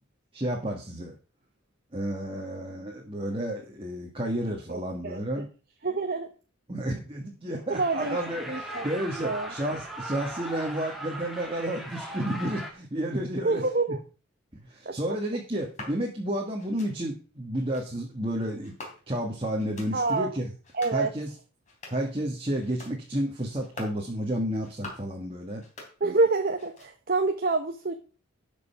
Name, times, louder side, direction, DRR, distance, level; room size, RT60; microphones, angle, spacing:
voice 1, 0.3-1.1 1.9-5.5 6.7-13.6 14.7-18.7 19.1-20.5 20.9-21.3 21.9-25.6, right 1 dB, 25° right, 0 dB, 1.6 m, -31 dB
voice 2, 4.7-5.2 5.8-6.3 7.7-8.2 8.5-8.8 9.2-9.5 13.4-14.0 14.9-15.0 19.9-20.3 20.7-21.1 26.0-27.9, right 3 dB, 45° right, 5 dB, 0.9 m, -27 dB
sound 1, 7.7-12.7, right 1 dB, ahead, 1.8 m, -39 dB
sound 2, 15.5-16.0 16.6-16.9 17.5-17.9 18.6-19.2 19.6-19.9 20.5-21.0 21.5-22.1 22.6-23.0 23.5-24.0 24.5-25.1 25.5-26.3 26.5-27.1, left 2 dB, 35° left, 3.5 m, -45 dB
12.5 x 5.4 x 5.7 m, 0.37 s
head